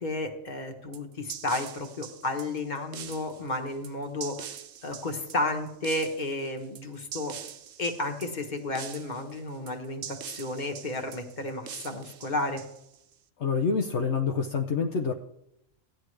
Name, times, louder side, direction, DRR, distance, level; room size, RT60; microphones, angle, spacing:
voice 1, 0.0-4.6 4.8-7.3 7.8-12.6, left 2 dB, 40° left, 4 dB, 1.4 m, -32 dB
sound 1, 0.9-13.1, right 9 dB, 70° right, 0.9 m, -44 dB
voice 2, 13.4-15.1, left 5 dB, 65° left, 3 dB, 1.0 m, -27 dB
16.0 x 10.0 x 3.3 m, 0.81 s
omnidirectional pair, 1.3 m